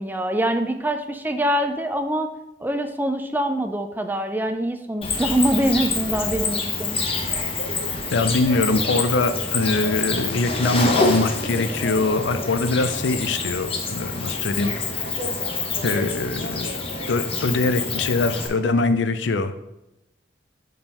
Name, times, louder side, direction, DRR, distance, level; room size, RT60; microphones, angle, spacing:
voice 1, 0.0-2.3 2.6-7.0, right 1 dB, 10° right, 7 dB, 0.4 m, -24 dB
Cricket, 5.0-18.5, left 3 dB, 30° left, 0.9 m, -27 dB
voice 2, 8.1-15.1 15.8-16.8 17.1-19.7, left 3 dB, 70° left, 10 dB, 0.5 m, -23 dB
10.5 x 3.8 x 3.0 m, 0.91 s
head